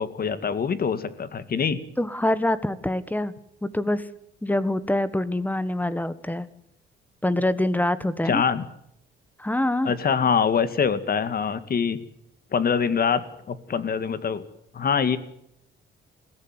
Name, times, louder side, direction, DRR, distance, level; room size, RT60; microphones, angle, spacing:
voice 1, 0.0-1.8 8.3-8.6 9.8-12.0 12.5-14.4 14.7-15.2, left 6 dB, 50° left, 13 dB, 2.0 m, -24 dB
voice 2, 2.0-3.3 3.6-4.0 4.4-6.5 7.2-8.4 9.4-9.9, left 1 dB, 10° left, 15 dB, 1.5 m, -25 dB
21.5 x 15.0 x 9.7 m, 0.76 s
cardioid pair, 90°, 20 cm